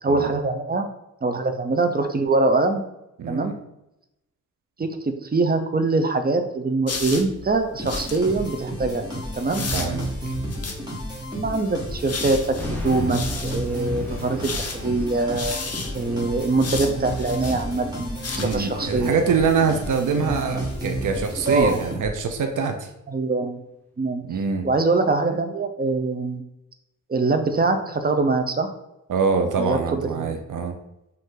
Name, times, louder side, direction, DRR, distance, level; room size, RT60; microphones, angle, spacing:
voice 1, 0.0-0.9 1.2-2.8 3.3-3.5 4.8-9.1 9.4-9.7 11.3-15.5 15.9-19.2 21.5-21.8 23.1-23.6 24.0-24.2 24.6-26.4 27.1-28.7 29.6-30.3, right 3 dB, 30° right, 7 dB, 0.5 m, -23 dB
voice 2, 3.2-3.5 9.7-10.3 18.4-22.9 24.3-24.7 29.1-30.8, right 5 dB, 75° right, 6 dB, 0.6 m, -24 dB
sound 1, 6.9-8.2 9.4-10.8 11.7-13.6 14.3-18.6, left 4 dB, 50° left, 0.7 m, -34 dB
sound 2, 7.8-22.4, right 1 dB, 15° right, 1.5 m, -32 dB
sound 3, 12.6-20.6, left 1 dB, 5° left, 0.9 m, -39 dB
5.3 x 2.6 x 3.8 m, 0.87 s
wide cardioid pair, 90°, 31 cm